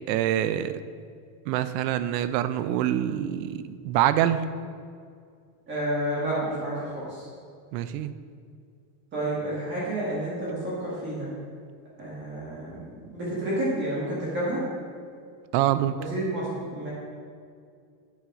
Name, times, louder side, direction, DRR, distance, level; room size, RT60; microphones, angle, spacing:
voice 1, 0.1-0.7 1.5-4.4 7.7-8.1 15.5-16.0, right 12 dB, 85° right, 13 dB, 0.6 m, -25 dB
voice 2, 5.7-7.3 9.1-11.3 12.0-14.6 16.0-16.9, right 1 dB, 25° right, -8 dB, 1.8 m, -30 dB
8.8 x 6.3 x 3.7 m, 2.2 s
cardioid pair, 175°, 48 cm